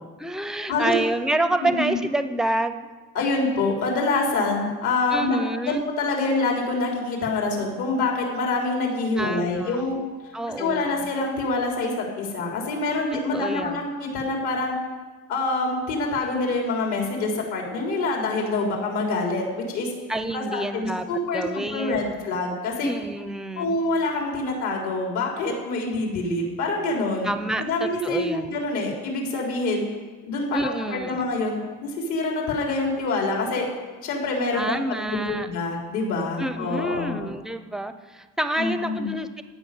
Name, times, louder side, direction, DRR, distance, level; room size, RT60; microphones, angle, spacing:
voice 1, 0.2-2.9 5.1-5.9 9.2-9.8 10.3-11.1 13.3-13.9 20.1-21.0 21.3-22.3 22.8-23.8 27.2-28.6 30.5-31.3 34.5-35.5 36.4-39.4, right 1 dB, ahead, 9 dB, 0.5 m, -28 dB
voice 2, 3.1-5.4 5.7-10.0 10.6-14.8 15.3-19.9 20.3-22.9 23.6-27.3 27.6-29.8 30.3-33.7 34.0-37.2 38.6-39.1, left 3 dB, 80° left, 0 dB, 3.8 m, -26 dB
15.5 x 6.3 x 9.9 m, 1.4 s
cardioid pair, 175°, 29 cm